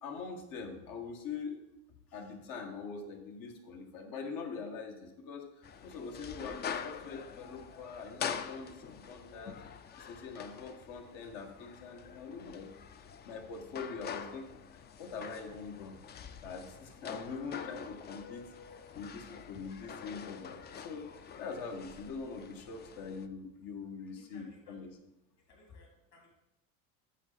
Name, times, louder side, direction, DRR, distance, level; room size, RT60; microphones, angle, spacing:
voice 1, 0.0-1.6 2.1-9.6 10.0-12.7 13.2-16.0 16.4-25.0, left 5 dB, 70° left, 3 dB, 1.7 m, -43 dB
sound 1, 5.6-23.3, left 7 dB, 30° left, 0.4 m, -45 dB
voice 2, 24.2-24.9 25.5-26.3, left 3 dB, 50° left, 0 dB, 3.3 m, -59 dB
8.3 x 7.0 x 4.1 m, 0.92 s
cardioid pair, 135°, 35 cm